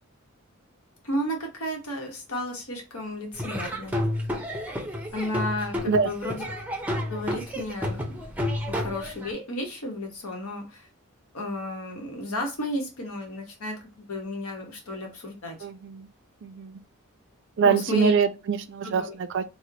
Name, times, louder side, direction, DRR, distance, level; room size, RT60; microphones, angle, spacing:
voice 1, 1.0-4.0 5.1-6.4 7.1-8.2 8.7-10.8 11.3-15.6 17.6-18.1 18.8-19.1, left 1 dB, 80° left, 1.0 m, -33 dB
Laughter / Drum, 3.3-9.3, left 1 dB, 5° right, 0.6 m, -31 dB
voice 2, 15.6-16.1 16.4-16.8 17.6-19.4, right 5 dB, 60° right, 0.4 m, -24 dB
3.1 x 2.1 x 3.8 m
head